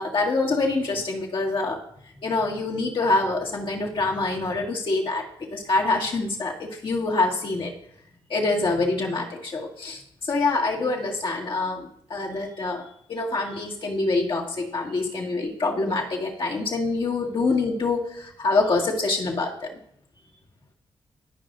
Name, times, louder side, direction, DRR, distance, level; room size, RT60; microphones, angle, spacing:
voice 1, 0.0-1.8 2.2-7.7 8.3-19.7, left 3 dB, 60° left, -2 dB, 1.8 m, -25 dB
14.5 x 5.0 x 2.5 m, 0.67 s
cardioid pair, 65°, 10 cm